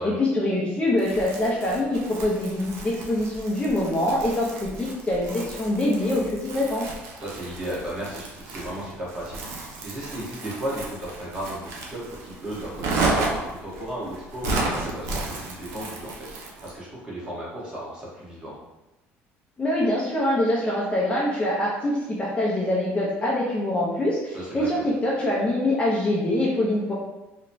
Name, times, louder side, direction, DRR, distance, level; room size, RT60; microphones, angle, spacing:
voice 1, 0.0-6.9 19.6-26.9, left 1 dB, 20° left, -5 dB, 0.5 m, -24 dB
Crumpling crinkling, 1.0-16.8, right 2 dB, 70° right, 0.5 m, -33 dB
voice 2, 7.2-18.5 24.3-24.9, right 1 dB, 20° right, -6 dB, 1.1 m, -35 dB
2.9 x 2.1 x 2.6 m, 0.99 s
cardioid pair, 105°, 5 cm